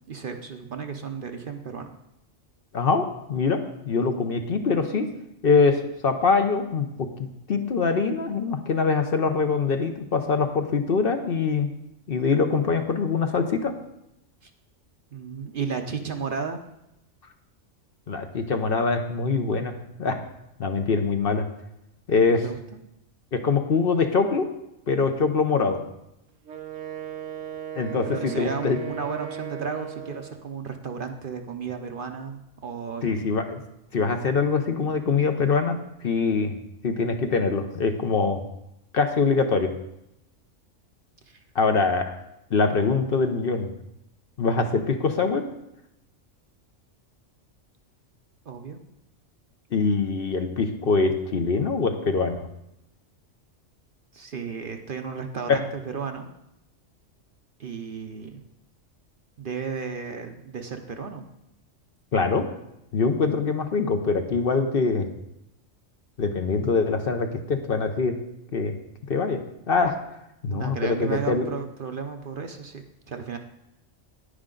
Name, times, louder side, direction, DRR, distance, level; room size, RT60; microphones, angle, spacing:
voice 1, 0.1-1.9 14.4-14.5 15.1-16.6 22.3-22.6 27.9-33.1 41.3-41.4 48.5-48.8 54.1-56.3 57.6-58.4 59.4-61.3 70.5-73.4, right 5 dB, 50° right, 5 dB, 0.8 m, -34 dB
voice 2, 2.7-3.6 3.8-5.1 5.4-11.7 12.1-13.7 18.1-19.7 20.0-20.2 20.6-21.4 22.1-22.4 23.3-24.5 24.9-25.8 27.8-28.8 33.0-33.6 33.9-35.8 36.0-36.6 36.8-38.4 38.9-39.7 41.5-42.1 42.5-43.7 44.4-45.4 49.7-52.4 55.5-55.6 62.1-62.4 62.9-65.1 66.2-68.2 68.5-68.7 69.1-69.4 69.7-70.0 70.4-71.5, left 4 dB, 50° left, 6 dB, 0.9 m, -23 dB
Wind instrument woodwind instrument, 26.5-30.5, right 9 dB, 85° right, 1.1 m, -37 dB
10.0 x 9.7 x 3.8 m, 0.85 s
omnidirectional pair, 1.3 m